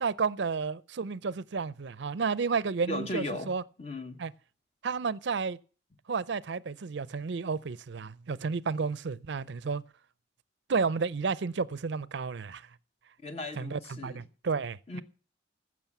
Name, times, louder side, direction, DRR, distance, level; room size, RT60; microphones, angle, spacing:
voice 1, 0.0-3.6 4.2-4.3 4.8-5.6 6.1-9.8 10.7-12.6 13.6-15.0, right 5 dB, 65° right, 0.5 m, -31 dB
voice 2, 2.9-3.5 3.8-4.2 13.2-14.2 14.9-15.0, left 1 dB, 30° left, 1.1 m, -36 dB
15.0 x 6.2 x 7.2 m
head